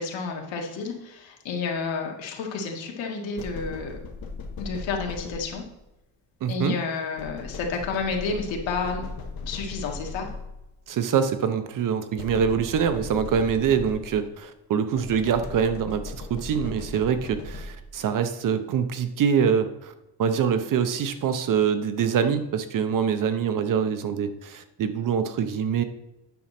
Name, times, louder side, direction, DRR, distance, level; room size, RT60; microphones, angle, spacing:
voice 1, 0.0-4.0 4.6-5.6 6.5-9.1 9.4-10.3, left 4 dB, 80° left, 1 dB, 1.9 m, -30 dB
window rapping, 3.4-5.8 7.2-10.8 12.2-14.4 15.0-18.0, left 3 dB, 50° left, 1.2 m, -38 dB
voice 2, 6.4-6.8 10.9-19.9 20.2-25.8, right 7 dB, 45° right, 9 dB, 0.7 m, -24 dB
9.3 x 6.1 x 4.3 m, 0.92 s
cardioid pair, 170°, 45 cm